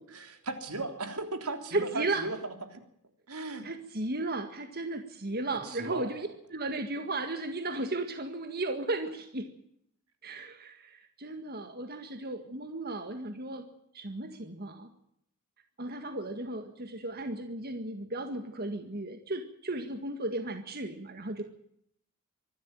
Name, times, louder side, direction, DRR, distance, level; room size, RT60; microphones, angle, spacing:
voice 1, 0.1-2.8 3.3-3.7 5.6-6.1, right 3 dB, 85° right, 7 dB, 3.6 m, -37 dB
voice 2, 1.7-2.2 3.6-9.5 10.2-13.7 13.9-14.9 15.8-21.4, right 2 dB, 45° right, 7 dB, 1.9 m, -35 dB
25.0 x 12.5 x 9.0 m, 0.71 s
head